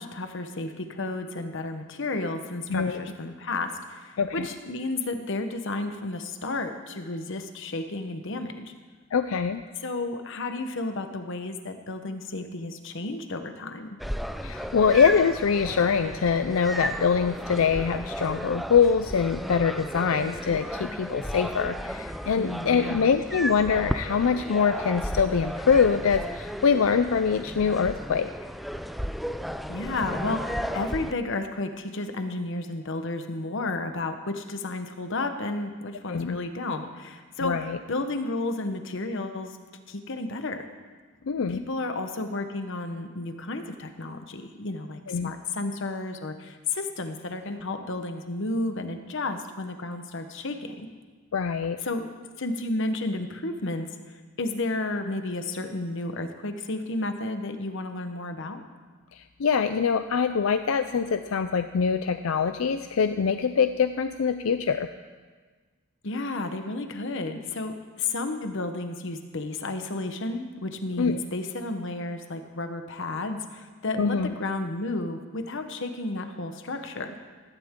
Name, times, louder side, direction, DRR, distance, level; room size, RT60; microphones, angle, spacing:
voice 1, 0.0-8.7 9.8-14.0 22.4-23.0 29.7-39.6 39.9-40.7 41.5-50.9 51.8-52.1 52.4-58.6 66.0-77.1, left 2 dB, 65° left, 7 dB, 1.1 m, -32 dB
voice 2, 2.7-3.1 4.2-4.5 9.1-9.6 14.4-28.3 36.1-36.4 37.4-37.8 41.3-41.6 45.1-45.3 51.3-51.8 59.1-64.9 71.0-71.2 74.0-74.3, left 6 dB, 85° left, 9 dB, 0.5 m, -24 dB
sound 1, 14.0-31.1, equal, ahead, 0.4 m, -34 dB
16.5 x 15.0 x 3.7 m, 1.5 s
head